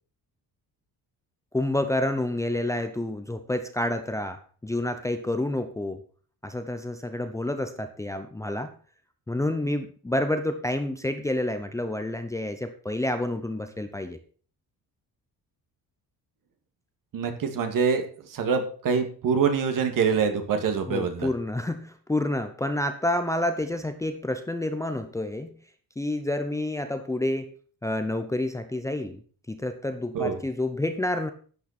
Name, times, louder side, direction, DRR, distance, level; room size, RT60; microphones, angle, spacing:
voice 1, 1.5-6.0 6.4-8.7 9.3-14.2 20.9-25.6 26.0-27.5 27.8-29.2 29.5-31.3, left 1 dB, 10° left, 7 dB, 0.7 m, -29 dB
voice 2, 17.1-21.3 30.1-30.4, right 6 dB, 55° right, 6 dB, 2.3 m, -25 dB
12.0 x 8.6 x 4.3 m, 0.42 s
cardioid pair, 175°, 38 cm